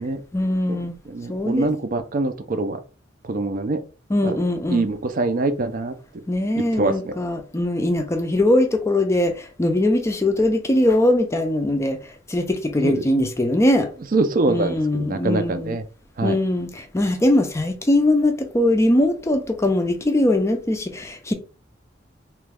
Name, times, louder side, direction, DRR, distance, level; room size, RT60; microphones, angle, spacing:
voice 1, 0.3-0.9 1.3-1.7 4.1-4.9 6.3-13.9 14.5-15.8 16.2-21.3, left 1 dB, 15° left, 0.4 m, -21 dB
voice 2, 1.1-2.8 3.2-3.8 4.2-4.4 4.7-5.9 6.7-7.1 12.8-13.1 14.1-15.8 16.2-16.4, right 2 dB, 45° right, 0.5 m, -24 dB
3.0 x 2.3 x 3.3 m
head